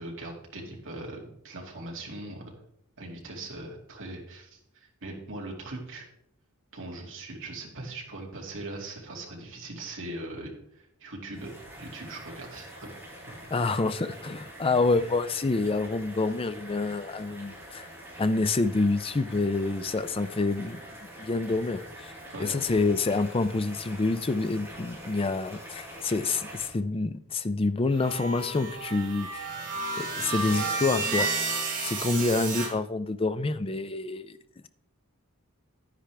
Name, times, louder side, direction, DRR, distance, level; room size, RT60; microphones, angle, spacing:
voice 1, 0.0-2.5 3.0-6.1 6.7-11.5 11.8-12.9 14.9-15.0 22.3-22.5, right 2 dB, 60° right, 0 dB, 2.4 m, -40 dB
sound 1, 11.3-26.7, equal, 10° right, 4.2 m, -45 dB
voice 2, 13.5-17.9 18.2-20.8 21.2-22.1 22.4-29.5 30.0-31.3 31.8-34.4, left 3 dB, 25° left, 12 dB, 0.5 m, -27 dB
sound 2, 27.9-32.7, right 3 dB, 40° right, 2.3 m, -31 dB
10.5 x 9.9 x 3.4 m, 0.74 s
head